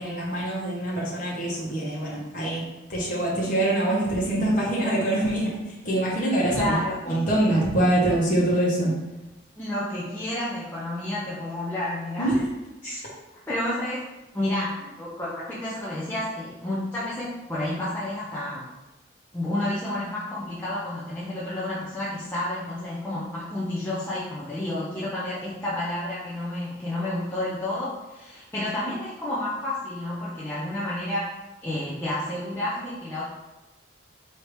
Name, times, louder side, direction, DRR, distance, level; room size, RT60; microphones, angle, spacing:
voice 1, 0.0-2.6 2.9-6.8 7.1-8.9 12.2-12.4, right 1 dB, 45° left, -5 dB, 1.1 m, -24 dB
voice 2, 6.5-7.2 9.6-12.4 12.8-13.0 13.5-14.0 14.3-18.7 19.3-31.3 31.6-33.2, left 1 dB, 10° left, -9 dB, 0.5 m, -30 dB
4.8 x 2.8 x 3.2 m, 1.0 s
head